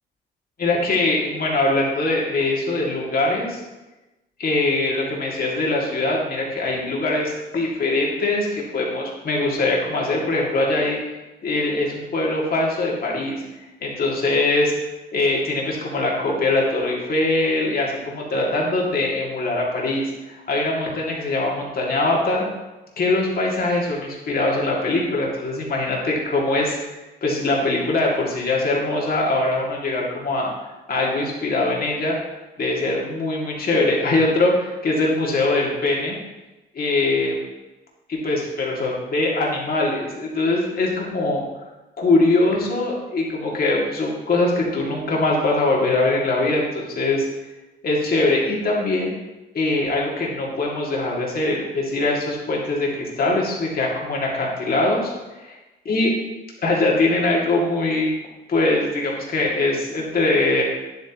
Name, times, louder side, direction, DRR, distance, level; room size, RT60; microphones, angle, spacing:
voice 1, 0.6-3.6 4.4-11.0 11.4-13.4 13.8-14.7 15.1-22.5 23.0-30.5 30.9-32.2 32.6-36.2 36.7-37.4 38.1-41.4 42.0-47.3 47.8-49.1 49.5-55.1 55.9-56.1 56.6-58.1 58.5-60.6, left 2 dB, 50° left, -2 dB, 2.4 m, -22 dB
9.8 x 8.2 x 3.0 m, 1.1 s
cardioid pair, 90°, 20 cm